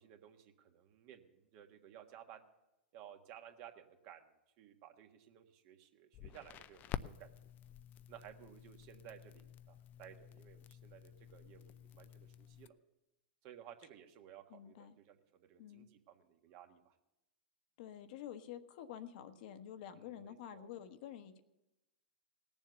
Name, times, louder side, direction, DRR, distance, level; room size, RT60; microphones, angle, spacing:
voice 1, 0.0-2.4 2.9-7.3 8.1-12.8 13.4-17.0 20.0-20.7, right 10 dB, 45° right, 5 dB, 1.6 m, -57 dB
Crackle, 6.1-12.7, left 10 dB, 35° left, 0.5 m, -50 dB
voice 2, 14.5-15.0 15.6-15.9 17.8-21.4, left 10 dB, 60° left, 8 dB, 1.2 m, -49 dB
18.5 x 7.2 x 6.8 m, 0.95 s
hypercardioid pair, 110°, 5 cm